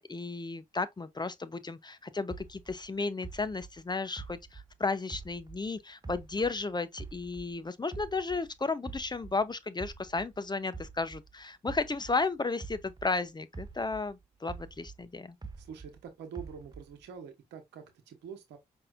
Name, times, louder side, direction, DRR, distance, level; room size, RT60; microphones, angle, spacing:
voice 1, 0.0-15.4, left 3 dB, 25° left, 0.6 m, -34 dB
sound 1, 2.3-5.7 6.0-8.5 8.8-13.2 13.5-16.0 16.3-17.1, right 4 dB, 25° right, 0.9 m, -46 dB
voice 2, 15.6-18.6, right 7 dB, 90° right, 1.0 m, -46 dB
5.3 x 2.7 x 2.5 m
supercardioid pair, 45°, 17 cm